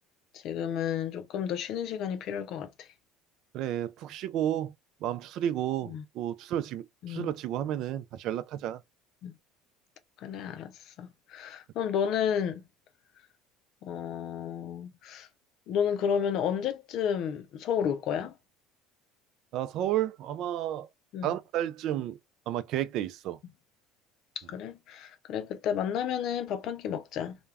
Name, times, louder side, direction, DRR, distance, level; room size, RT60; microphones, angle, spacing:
voice 1, 0.3-2.9 5.9-6.0 7.0-7.3 9.2-9.3 10.2-10.7 11.0-12.6 13.8-15.3 15.7-18.3 21.1-21.3 24.4-27.4, left 8 dB, 60° left, 0.4 m, -31 dB
voice 2, 3.5-4.7 5.0-8.8 19.5-20.9 21.2-22.2 22.5-23.4, right 11 dB, 60° right, 0.3 m, -32 dB
2.3 x 2.1 x 3.3 m
supercardioid pair, 95°, 0 cm